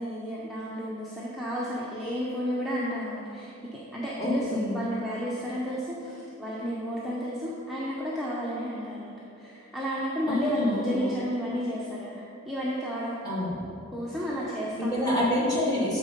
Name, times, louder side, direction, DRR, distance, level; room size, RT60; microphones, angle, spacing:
voice 1, 0.0-13.2 13.9-15.0 15.3-15.4, equal, ahead, -7 dB, 0.7 m, -32 dB
voice 2, 4.2-4.8 10.3-11.1 13.2-13.6 14.8-16.0, left 1 dB, 20° left, -6 dB, 1.8 m, -27 dB
8.6 x 3.8 x 6.6 m, 2.7 s
head